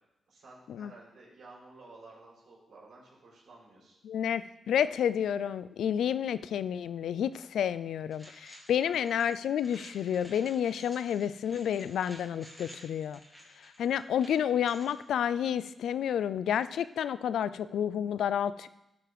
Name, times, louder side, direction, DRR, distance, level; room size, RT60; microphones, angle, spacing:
voice 1, 0.3-4.0 8.8-9.0, right 3 dB, 70° right, -4 dB, 4.0 m, -53 dB
voice 2, 4.0-13.2 13.6-18.7, left 9 dB, 90° left, 15 dB, 0.3 m, -30 dB
sound 1, 8.1-15.0, equal, 5° left, 2.3 m, -53 dB
12.5 x 4.8 x 4.8 m, 0.88 s
cardioid pair, 80°, 0 cm